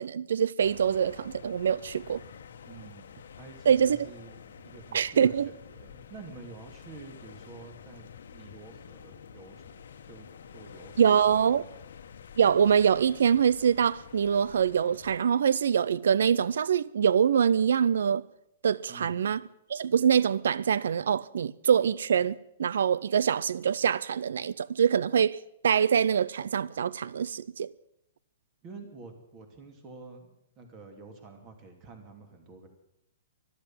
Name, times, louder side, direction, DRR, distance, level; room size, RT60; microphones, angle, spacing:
voice 1, 0.0-2.2 3.7-4.0 4.9-5.5 11.0-11.6 12.4-18.3 18.6-19.4 19.7-27.7, right 7 dB, 80° right, 0.5 m, -24 dB
sound 1, 0.6-15.2, left 7 dB, 80° left, 1.3 m, -49 dB
voice 2, 2.6-9.8 10.0-10.3 10.5-11.8 18.9-19.3 28.6-32.7, right 3 dB, 25° right, 2.7 m, -49 dB
13.5 x 12.5 x 7.6 m
hypercardioid pair, 165°, 0 cm